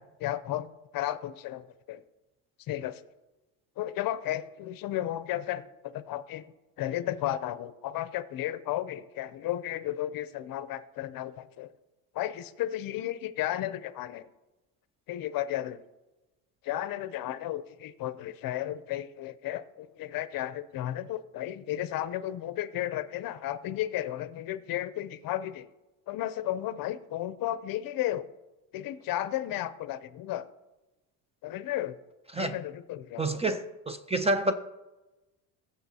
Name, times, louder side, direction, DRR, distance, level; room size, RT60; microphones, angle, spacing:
voice 1, 0.0-2.0 2.7-3.0 3.8-6.5 6.8-11.7 12.1-14.3 15.1-15.8 16.6-25.7 26.1-28.3 28.7-30.5 31.4-32.0 32.3-33.3, left 13 dB, 55° left, 0.6 m, -33 dB
voice 2, 33.2-34.5, right 2 dB, 15° right, 0.4 m, -28 dB
15.5 x 7.0 x 2.8 m
cardioid pair, 110°, 41 cm